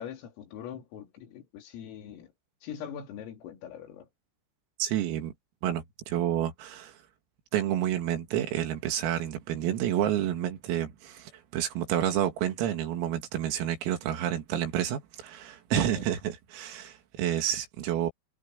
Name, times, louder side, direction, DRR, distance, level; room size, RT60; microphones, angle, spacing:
voice 1, 0.0-2.3 2.6-4.1 16.0-16.1, left 9 dB, 80° left, 5.6 m, -42 dB
voice 2, 4.8-5.3 5.6-7.0 7.5-18.1, right 11 dB, 90° right, 5.1 m, -29 dB
omnidirectional pair, 5.9 m